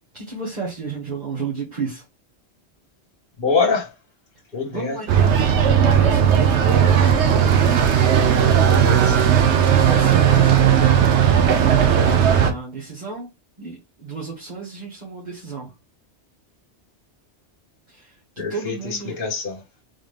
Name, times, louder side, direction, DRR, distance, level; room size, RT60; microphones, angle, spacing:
voice 1, 0.1-2.0 4.7-5.3 5.7-7.4 9.6-11.1 11.7-13.3 13.6-15.7 17.9-19.2, right 4 dB, 40° right, 1.7 m, -32 dB
voice 2, 3.4-3.9 4.5-5.0 8.3-9.2 18.4-19.6, left 4 dB, 50° left, 1.2 m, -25 dB
sound 1, 5.1-12.5, right 8 dB, 75° right, 1.0 m, -16 dB
4.0 x 3.7 x 3.3 m
omnidirectional pair, 1.2 m